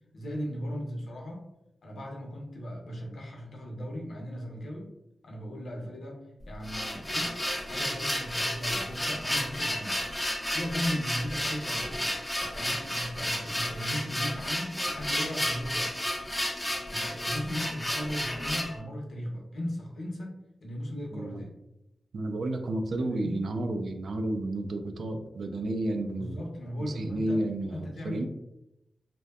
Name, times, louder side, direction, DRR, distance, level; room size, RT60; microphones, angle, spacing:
voice 1, 0.1-1.5 1.8-4.9 5.2-10.0 10.3-12.2 12.4-16.0 16.9-21.5 23.0-23.5 26.2-27.4 27.7-28.3, equal, 70° left, -1 dB, 0.6 m, -37 dB
sound 1, 6.4-18.8, left 1 dB, 10° left, 0.4 m, -32 dB
voice 2, 21.1-21.4 22.1-26.4 26.8-28.2, right 1 dB, 75° right, 5 dB, 0.3 m, -31 dB
2.6 x 2.1 x 2.3 m, 0.87 s
wide cardioid pair, 90°, 0 cm